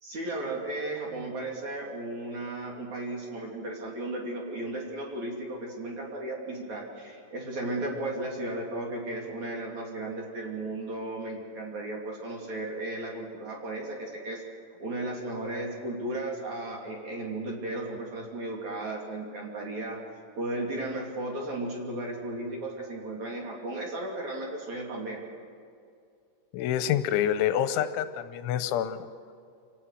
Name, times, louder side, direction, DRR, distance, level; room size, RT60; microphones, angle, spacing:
voice 1, 0.0-14.4 14.8-20.0 20.4-25.2, right 2 dB, 45° right, -1 dB, 3.4 m, -35 dB
voice 2, 26.5-29.0, left 10 dB, 90° left, 11 dB, 3.2 m, -27 dB
27.0 x 17.0 x 6.5 m, 2.3 s
omnidirectional pair, 5.4 m